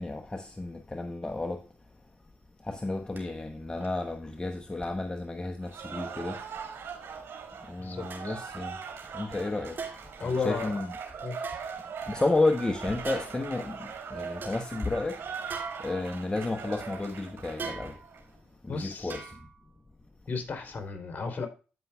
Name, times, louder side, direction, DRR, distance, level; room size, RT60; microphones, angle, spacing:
voice 1, 0.0-1.7 2.6-6.4 7.7-8.8 9.1-9.8 10.2-10.9 12.0-18.0 18.6-19.5, left 2 dB, 20° left, 1.0 m, -32 dB
sound 1, 3.2-3.3 3.8-4.0 4.8-4.9 5.8-5.9 6.9-7.0 8.1-8.5 9.8-10.3 11.4-12.3 13.0-13.5 14.0-14.1 14.4-14.6 15.5-16.3 17.6-18.2 19.1-19.7 20.0-20.1, right 5 dB, 55° right, 2.9 m, -41 dB
Cheering / Applause, 5.6-18.2, right 6 dB, 70° right, 2.9 m, -41 dB
voice 2, 7.8-8.4 10.2-10.7 11.2-11.4 18.7-19.2 20.3-21.5, left 4 dB, 45° left, 3.1 m, -34 dB
15.0 x 5.5 x 2.3 m
supercardioid pair, 60°, 4 cm